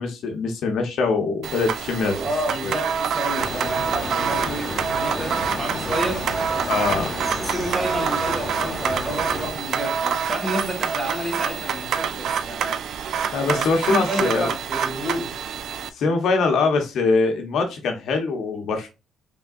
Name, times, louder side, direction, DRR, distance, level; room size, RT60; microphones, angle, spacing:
voice 1, 0.0-2.2 2.6-2.7 4.4-4.5 6.7-7.1 13.3-14.5 15.9-18.9, left 4 dB, 75° left, 0.9 m, -23 dB
sound 1, 1.4-15.9, right 7 dB, 70° right, 0.4 m, -27 dB
voice 2, 2.1-6.3 6.8-7.1 7.4-12.8 13.4-15.4, right 1 dB, 20° right, 1.9 m, -30 dB
sound 2, 3.4-9.5, left 1 dB, 15° left, 1.3 m, -31 dB
3.5 x 3.5 x 2.4 m
cardioid pair, 90°, 0 cm